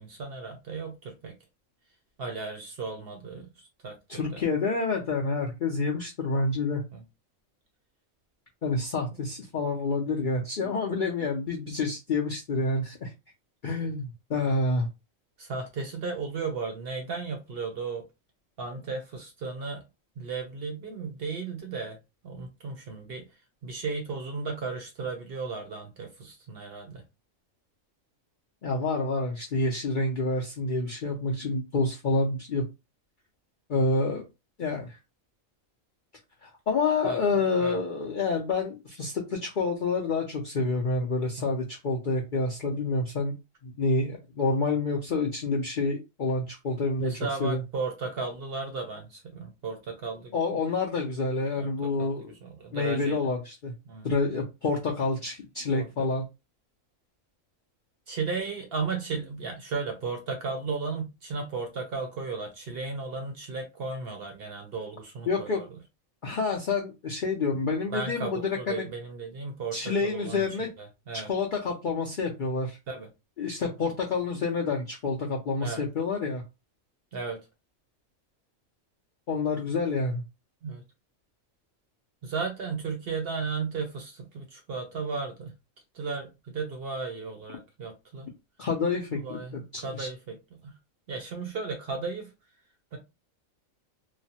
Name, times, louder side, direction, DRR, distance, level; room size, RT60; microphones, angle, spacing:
voice 1, 0.0-1.3 2.2-3.5 3.8-4.4 6.9-7.0 15.4-18.0 18.6-19.8 20.2-22.0 22.2-23.3 23.6-27.0 37.0-37.2 37.6-37.8 41.4-41.5 47.0-50.3 51.6-52.1 52.4-53.2 53.9-54.1 55.7-55.9 58.1-65.7 67.9-70.4 70.8-71.3 72.9-73.1 75.6-75.8 77.1-77.4 80.6-80.8 82.2-85.5 85.9-88.3 89.2-89.5 89.8-90.8 91.1-92.3 92.9-93.0, right 4 dB, 60° right, 0.7 m, -35 dB
voice 2, 4.1-6.8 8.6-13.1 13.6-14.9 28.6-32.7 33.7-34.2 34.6-35.0 36.4-43.3 43.6-47.6 50.3-52.3 52.7-53.7 54.0-56.2 65.3-65.6 66.2-68.8 69.7-70.7 71.1-72.8 73.4-76.4 79.3-80.2 88.6-90.1, left 3 dB, 65° left, 0.5 m, -28 dB
3.0 x 2.0 x 2.7 m
omnidirectional pair, 1.4 m